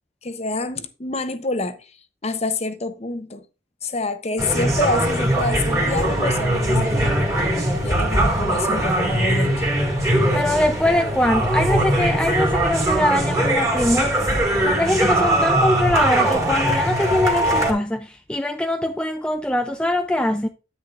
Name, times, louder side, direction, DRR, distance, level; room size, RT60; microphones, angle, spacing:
voice 1, 0.2-1.8 2.2-3.4 3.8-7.1 7.8-9.7, left 2 dB, 30° left, 0.8 m, -27 dB
sound 1, 4.4-17.7, right 1 dB, 15° right, 2.0 m, -21 dB
voice 2, 10.3-14.3 14.7-20.5, left 1 dB, 5° left, 0.4 m, -22 dB
9.7 x 9.6 x 2.5 m
head